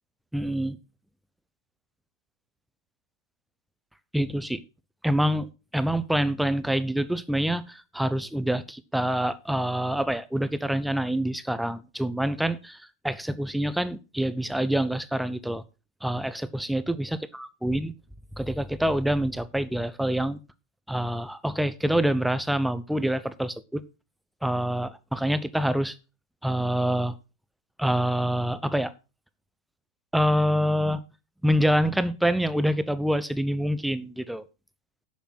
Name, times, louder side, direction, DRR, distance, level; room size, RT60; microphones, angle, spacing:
voice 1, 0.3-0.8 4.1-4.6 5.0-15.6 16.0-17.9 18.4-20.4 20.9-23.8 24.4-25.9 26.4-27.1 27.8-28.9 30.1-31.0 31.4-34.5, equal, ahead, 0.8 m, -26 dB
10.5 x 7.3 x 6.0 m
figure-of-eight pair, 90°, 0 cm